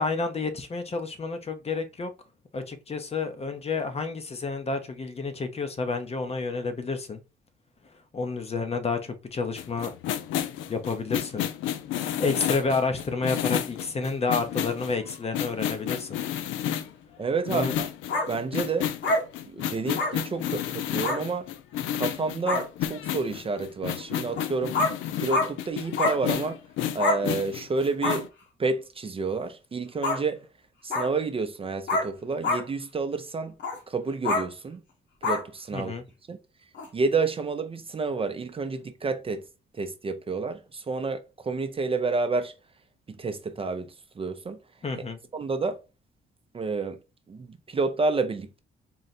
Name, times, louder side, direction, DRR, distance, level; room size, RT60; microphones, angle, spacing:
voice 1, 0.0-2.1 2.5-7.2 8.1-10.0 10.7-11.5 12.2-16.2 17.5-17.7 35.7-36.0 44.8-45.2, left 4 dB, 30° left, 0.6 m, -30 dB
sound 1, 9.6-16.9 17.4-28.3, left 11 dB, 85° left, 0.4 m, -31 dB
voice 2, 17.2-17.9 18.3-18.9 19.5-21.5 21.9-24.8 25.2-26.6 26.9-28.3 28.6-30.5 30.8-33.5 33.9-34.8 35.2-35.9 36.3-36.4 36.9-39.4 39.8-42.5 43.1-44.6 45.3-45.8 46.5-47.0 47.3-48.6, right 4 dB, 30° right, 0.5 m, -29 dB
sound 2, 18.1-18.3 19.0-19.2 20.0-20.1 21.0-21.2 22.1-22.2 22.5-22.6 24.3-24.4 24.7-24.9 25.3-25.5 26.0-26.2 27.0-27.2 28.0-28.2 30.0-30.2 30.9-31.1 31.9-32.1 32.4-32.6 33.6-33.8 34.2-34.4 35.2-35.4 36.7-36.9, left 2 dB, 65° left, 1.2 m, -25 dB
3.8 x 2.1 x 4.1 m
cardioid pair, 90°, 20 cm